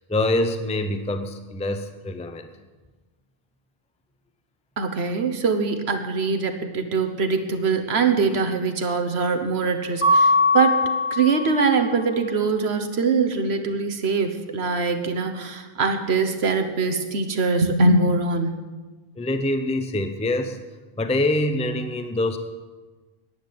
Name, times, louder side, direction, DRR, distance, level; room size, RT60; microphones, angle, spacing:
voice 1, 0.0-2.5 19.2-20.6 21.0-22.4, left 1 dB, 10° left, 8 dB, 0.6 m, -25 dB
voice 2, 4.8-10.8 11.1-18.7, right 4 dB, 80° right, 7 dB, 1.4 m, -23 dB
Mallet percussion, 10.0-11.8, left 2 dB, 50° left, 2.0 m, -20 dB
10.5 x 9.7 x 7.6 m, 1.3 s
omnidirectional pair, 1.1 m